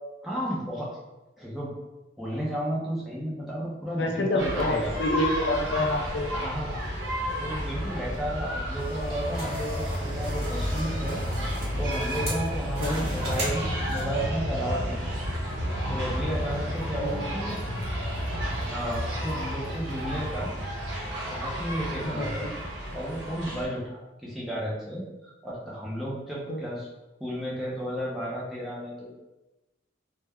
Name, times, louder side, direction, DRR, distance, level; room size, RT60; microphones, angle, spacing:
voice 1, 0.2-1.0 1.4-1.7 2.2-5.0 6.3-6.8 7.4-11.2 11.8-15.0 15.9-17.6 18.6-20.5 21.1-22.5 22.9-26.9 27.2-29.1, equal, ahead, -6 dB, 0.5 m, -33 dB
voice 2, 4.0-6.3 12.8-12.9 17.0-17.2 22.1-22.5 26.5-26.6, left 1 dB, 75° left, 2 dB, 0.4 m, -27 dB
sound 1, 4.4-23.6, equal, 80° right, 0.7 m, -31 dB
sound 2, 8.8-14.2, right 1 dB, 55° right, 1.0 m, -38 dB
2.2 x 2.1 x 3.4 m, 1.0 s
head